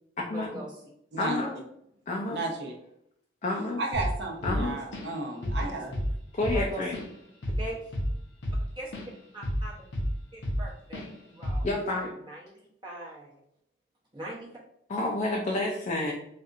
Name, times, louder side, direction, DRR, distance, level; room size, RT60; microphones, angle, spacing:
voice 1, 0.3-0.7 6.5-6.8 7.6-7.9 8.8-8.9 9.3-9.8 10.3-11.7 11.9-13.3 14.1-14.5, right 1 dB, 25° right, -6 dB, 0.8 m, -41 dB
voice 2, 1.2-1.6 2.1-2.4 3.4-3.8 4.4-4.8 6.3-7.0 11.6-12.1 14.9-16.1, left 2 dB, 40° left, -1 dB, 0.4 m, -29 dB
voice 3, 2.3-2.7 3.8-5.9, right 2 dB, 65° right, 1 dB, 0.7 m, -33 dB
Drum kit / Drum, 3.9-4.2 4.4-5.2 5.4-5.7 5.9-9.1 9.4-10.7 10.9-11.1 11.4-11.8, equal, 80° left, 0.7 m, -30 dB
4.2 x 2.5 x 2.4 m, 0.74 s
head